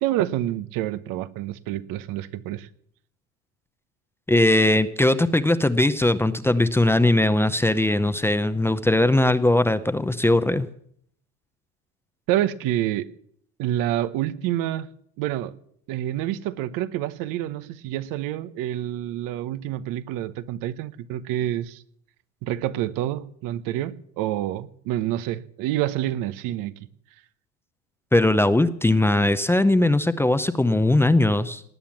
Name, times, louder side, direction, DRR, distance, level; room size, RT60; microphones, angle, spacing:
voice 1, 0.0-2.7 12.3-13.1 13.6-14.9 15.2-15.5 15.9-21.8 22.4-26.7, right 13 dB, 65° right, 1.0 m, -27 dB
voice 2, 4.3-10.7 28.1-31.6, left 2 dB, 5° left, 0.6 m, -20 dB
19.0 x 8.9 x 7.3 m
supercardioid pair, 120°, 36 cm